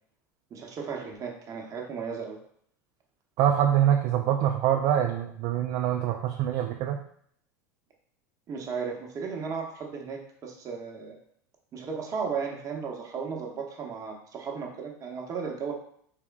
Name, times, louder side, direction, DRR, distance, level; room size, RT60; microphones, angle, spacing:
voice 1, 0.5-2.4 8.5-11.2 11.7-15.7, right 5 dB, 35° right, 0 dB, 0.9 m, -35 dB
voice 2, 3.4-7.0, right 10 dB, 50° right, 3 dB, 0.3 m, -24 dB
3.5 x 3.4 x 2.3 m, 0.65 s
hypercardioid pair, 85°, 9 cm